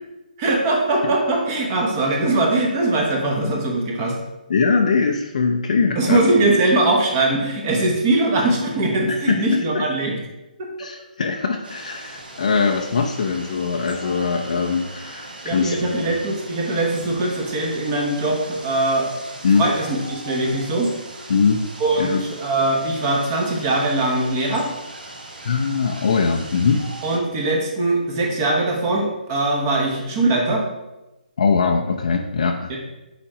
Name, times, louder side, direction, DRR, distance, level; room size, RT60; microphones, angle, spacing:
voice 1, 0.4-4.2 5.9-10.2 15.4-19.1 19.5-20.9 21.8-24.7 27.0-30.6 32.7-32.8, right 2 dB, 20° right, 0 dB, 1.0 m, -21 dB
voice 2, 4.5-6.2 9.1-9.8 10.8-16.2 19.4-19.7 21.3-21.7 22.0-22.2 25.4-26.8 31.4-32.7, left 5 dB, 50° left, 2 dB, 0.6 m, -21 dB
sound 1, 11.6-27.2, right 1 dB, 85° right, 1.8 m, -39 dB
6.9 x 4.4 x 4.9 m, 0.99 s
hypercardioid pair, 170°, 5 cm